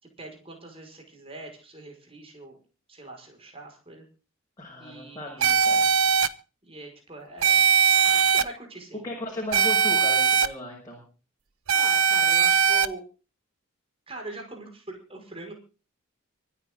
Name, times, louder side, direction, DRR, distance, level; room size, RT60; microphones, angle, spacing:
voice 1, 0.2-2.6 2.9-4.0 4.8-5.6 6.6-7.6 8.1-9.0 11.7-13.0 14.1-15.5, right 2 dB, 25° right, 1 dB, 5.6 m, -41 dB
voice 2, 4.6-5.9 7.9-8.1 9.0-11.0, left 1 dB, 15° left, -3 dB, 6.4 m, -36 dB
sound 1, 5.4-6.3 7.4-8.4 9.5-10.5 11.7-12.9, right 7 dB, 70° right, 1.0 m, -20 dB
25.0 x 9.8 x 3.9 m, 0.35 s
head